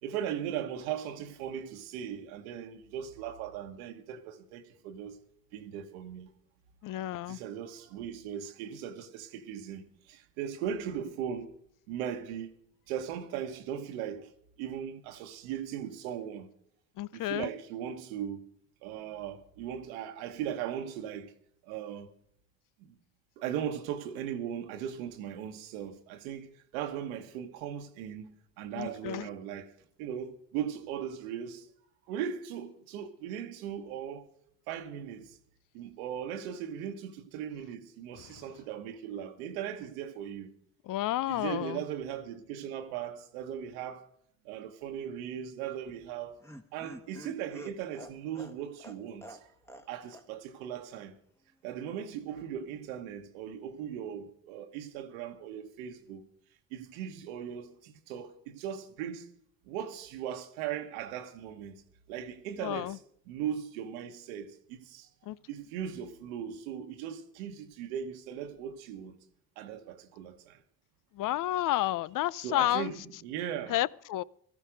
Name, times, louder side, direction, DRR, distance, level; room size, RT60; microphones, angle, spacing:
voice 1, 0.0-5.2 5.5-6.3 7.3-11.5 11.9-12.5 12.9-14.3 14.6-16.5 17.1-18.4 18.8-21.3 21.7-22.1 22.8-23.0 23.4-29.7 30.0-31.7 32.1-34.3 34.7-35.4 35.7-40.5 41.3-44.1 44.4-46.4 46.7-49.5 49.9-51.1 51.6-56.3 56.7-59.3 59.6-61.8 62.1-63.0 63.3-65.1 65.5-69.2 69.6-70.6 72.4-73.8, right 9 dB, 85° right, 1.3 m, -38 dB
voice 2, 6.8-7.4 17.0-17.5 28.7-29.3 38.2-38.4 40.9-41.8 62.6-63.0 65.3-65.4 71.1-72.9 73.7-74.2, left 14 dB, 55° left, 0.5 m, -31 dB
Laughter, 45.9-49.9 50.1-50.3 50.6-50.7, right 1 dB, 5° left, 1.5 m, -48 dB
13.5 x 13.5 x 5.1 m
supercardioid pair, 70°, 40 cm